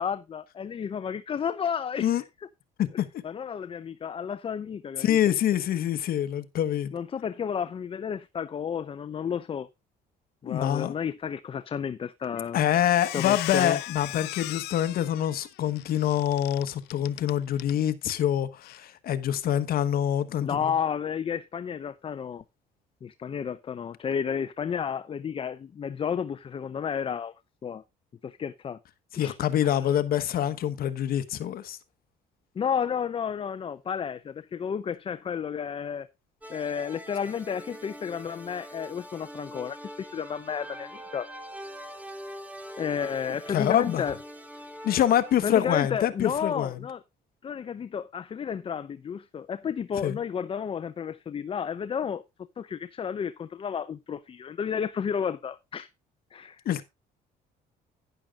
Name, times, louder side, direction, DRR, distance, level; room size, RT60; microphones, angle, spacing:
voice 1, 0.0-2.2 3.2-5.2 6.9-9.7 10.4-12.6 13.1-13.8 20.4-22.4 23.0-27.3 27.6-27.8 28.2-28.8 29.2-29.4 29.6-29.9 32.6-36.1 36.5-41.3 42.8-44.2 45.4-47.0 47.4-52.2 52.6-55.9 56.3-56.6, left 7 dB, 35° left, 0.6 m, -32 dB
voice 2, 5.0-6.9 10.5-10.9 12.5-20.5 29.1-31.8 43.5-44.0 44.8-46.8 50.0-50.2 56.6-56.8, left 11 dB, 60° left, 1.2 m, -25 dB
Squeak, 12.2-12.5 12.8-17.7 18.0-18.2 18.6-18.8, left 19 dB, 85° left, 0.5 m, -37 dB
sound 1, 36.4-45.4, equal, 10° right, 2.5 m, -43 dB
12.0 x 10.0 x 2.4 m
cardioid pair, 110°, 17 cm